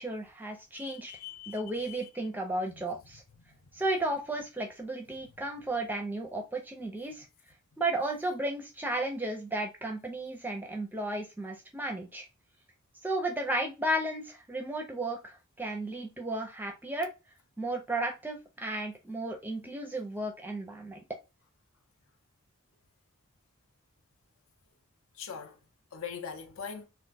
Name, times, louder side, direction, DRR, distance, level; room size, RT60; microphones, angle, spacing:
voice 1, 0.0-1.1 1.5-3.2 3.7-7.3 7.8-12.3 13.0-17.1 17.6-21.0, right 1 dB, 10° right, 0.5 m, -34 dB
voice 2, 0.7-2.1 2.7-2.8 3.4-3.5 25.2-25.6 25.9-26.8, left 7 dB, 65° left, 0.6 m, -42 dB
2.4 x 2.3 x 4.0 m
head